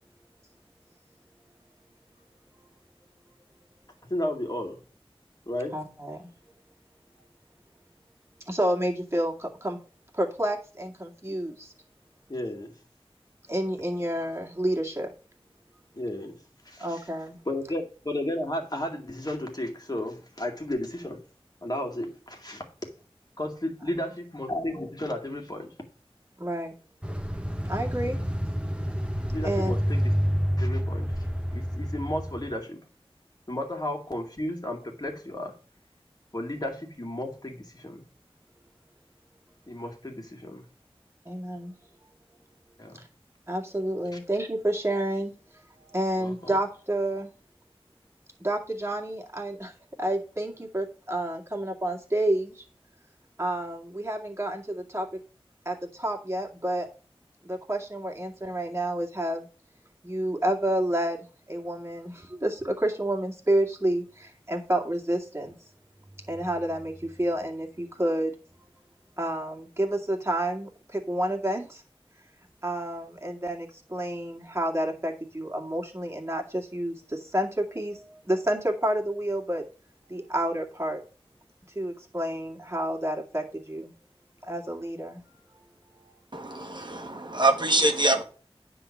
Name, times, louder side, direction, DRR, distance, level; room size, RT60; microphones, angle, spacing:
voice 1, 4.1-4.8 5.5-5.8 12.3-12.7 15.9-16.3 16.7-17.0 17.5-21.2 21.6-22.6 23.4-25.7 29.3-30.1 30.6-31.1 31.5-32.8 33.5-35.6 36.3-38.0 39.7-40.6 42.8-43.0 44.1-44.2 46.2-46.5, left 1 dB, 40° left, 2 dB, 2.3 m, -33 dB
voice 2, 5.7-6.3 8.5-9.8 10.1-11.7 13.5-15.1 16.8-17.4 23.8-23.9 26.4-26.7 27.7-28.2 29.4-29.8 41.2-41.7 42.9-43.1 43.5-47.3 48.4-52.6 53.4-55.1 55.7-56.9 57.4-59.5 60.0-65.6 66.3-68.3 69.2-71.8 72.6-79.6 80.1-81.0 81.7-83.9 84.4-85.2 86.0-86.1, right 1 dB, 25° right, 0 dB, 2.3 m, -29 dB
sound 1, 27.0-32.5, equal, 10° right, 1.3 m, -28 dB
voice 3, 86.3-88.2, right 2 dB, 50° right, 5 dB, 1.4 m, -24 dB
9.7 x 3.9 x 7.2 m, 0.39 s
wide cardioid pair, 40°, 10 cm